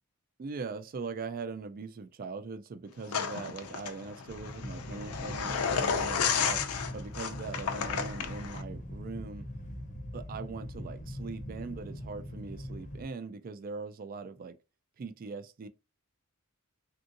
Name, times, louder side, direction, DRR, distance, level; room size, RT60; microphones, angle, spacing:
voice 1, 0.4-6.7 6.9-9.5 10.1-14.6 15.0-15.7, right 4 dB, 40° right, 0.4 m, -41 dB
sound 1, 3.1-8.6, left 6 dB, 75° left, 0.5 m, -32 dB
sound 2, 4.3-13.0, equal, 35° left, 0.7 m, -42 dB
3.5 x 2.7 x 2.5 m
head